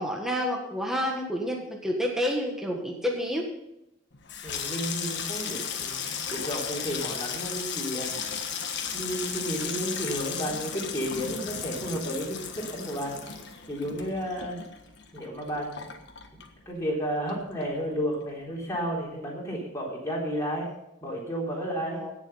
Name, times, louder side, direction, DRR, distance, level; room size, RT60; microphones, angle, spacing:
voice 1, 0.0-3.5 21.9-22.1, equal, ahead, 0 dB, 1.4 m, -29 dB
Water tap faucet / Sink (filling or washing), 4.1-17.0 17.3-17.9 18.2-18.5, left 7 dB, 55° left, 1.5 m, -35 dB
voice 2, 4.4-8.1 8.9-13.4 13.7-14.6 15.1-15.9 16.7-20.7 21.0-22.0, equal, 15° left, -4 dB, 3.8 m, -32 dB
17.0 x 7.2 x 5.5 m, 0.86 s
head